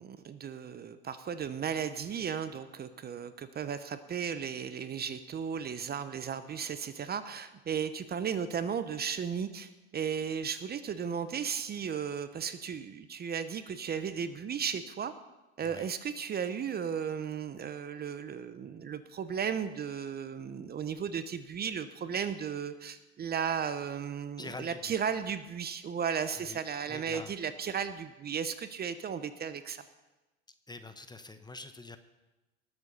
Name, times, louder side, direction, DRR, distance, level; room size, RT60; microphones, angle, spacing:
voice 1, 0.0-15.1 15.6-29.8, right 7 dB, 30° right, 12 dB, 0.8 m, -35 dB
voice 2, 24.4-25.0 26.4-26.6 26.9-27.3 27.6-27.8 30.7-32.0, left 3 dB, 10° left, 10 dB, 0.8 m, -45 dB
19.5 x 7.7 x 5.5 m, 1.1 s
hypercardioid pair, 100°, 35 cm